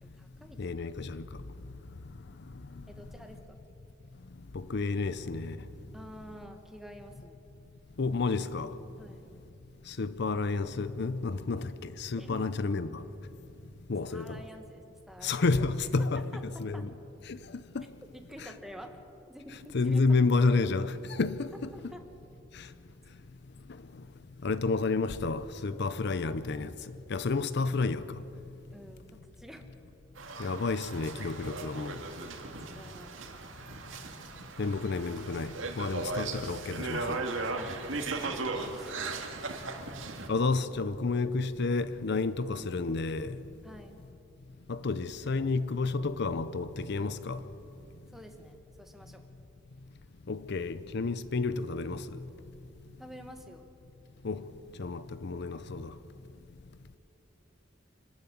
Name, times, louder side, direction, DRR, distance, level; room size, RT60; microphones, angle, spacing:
voice 1, 0.0-0.6 2.9-3.6 5.9-7.4 9.0-9.3 12.2-12.5 14.1-15.5 16.0-16.1 16.3-16.9 18.1-20.0 21.7-22.0 28.7-29.7 32.5-33.2 37.6-39.4 43.6-44.0 48.1-49.2 53.0-53.7, equal, ahead, 1.5 m, -49 dB
voice 2, 0.6-1.2 4.5-5.6 8.0-8.7 9.9-13.0 13.9-14.4 15.2-16.9 17.3-17.9 18.4-18.5 19.7-21.7 22.5-22.7 24.4-26.7 27.1-28.0 30.4-32.0 34.6-37.2 40.3-43.4 44.7-47.4 50.3-52.2 54.2-54.4 54.8-55.9, left 3 dB, 60° left, 0.6 m, -30 dB
sound 1, 30.2-40.3, right 3 dB, 80° right, 2.0 m, -37 dB
25.5 x 13.0 x 8.5 m
head